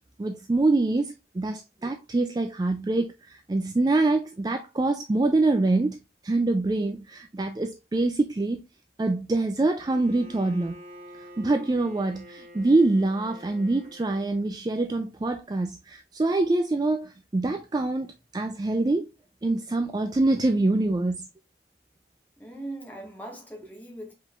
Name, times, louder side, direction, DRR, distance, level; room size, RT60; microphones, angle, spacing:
voice 1, 0.2-8.6 9.0-10.8 11.2-19.1 19.4-21.3, right 2 dB, 20° right, 0.3 m, -25 dB
Bowed string instrument, 9.8-14.5, equal, 45° right, 1.3 m, -48 dB
voice 2, 22.4-24.1, right 1 dB, 10° left, 1.5 m, -40 dB
5.1 x 3.7 x 2.4 m
head